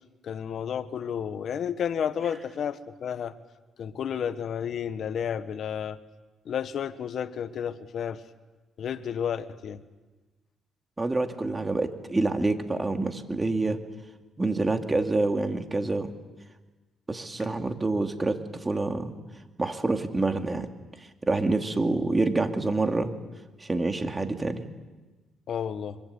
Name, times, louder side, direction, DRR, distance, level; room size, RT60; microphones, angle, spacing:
voice 1, 0.2-3.3 3.8-6.0 6.4-8.2 8.8-9.8 25.5-26.0, left 8 dB, 65° left, 12 dB, 1.3 m, -31 dB
voice 2, 11.0-13.8 14.4-16.1 17.1-19.1 19.6-20.7 21.2-23.1 23.6-24.6, right 2 dB, 20° right, 5 dB, 2.4 m, -27 dB
25.0 x 24.0 x 8.3 m, 1.2 s
cardioid pair, 90°, 0 cm